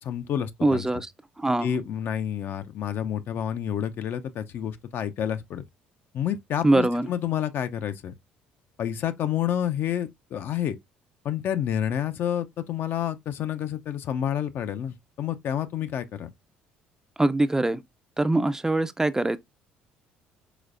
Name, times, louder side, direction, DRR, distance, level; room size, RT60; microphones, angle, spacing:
voice 1, 0.0-0.9 1.6-5.6 6.1-8.1 8.8-10.8 11.2-16.3, left 9 dB, 60° left, 0.6 m, -29 dB
voice 2, 0.6-1.1 1.4-1.7 6.6-7.1 17.2-17.8 18.2-19.4, right 2 dB, 15° right, 0.5 m, -23 dB
5.0 x 3.9 x 2.5 m
hypercardioid pair, 60°, 4 cm